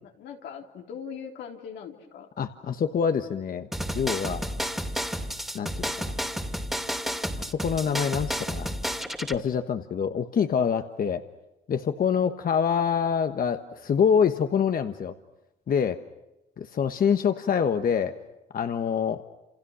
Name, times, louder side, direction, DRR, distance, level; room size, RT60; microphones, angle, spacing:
voice 1, 0.0-2.3, left 7 dB, 85° left, 2 dB, 3.5 m, -40 dB
voice 2, 2.4-3.7 3.9-4.5 5.5-5.9 7.4-8.8 9.2-11.2 11.7-15.1 15.7-16.0 16.6-18.1 18.5-19.2, left 7 dB, 55° left, 7 dB, 1.3 m, -25 dB
sound 1, 3.7-9.4, equal, ahead, 2.5 m, -31 dB
29.0 x 28.5 x 6.4 m, 0.95 s
cardioid pair, 85°, 18 cm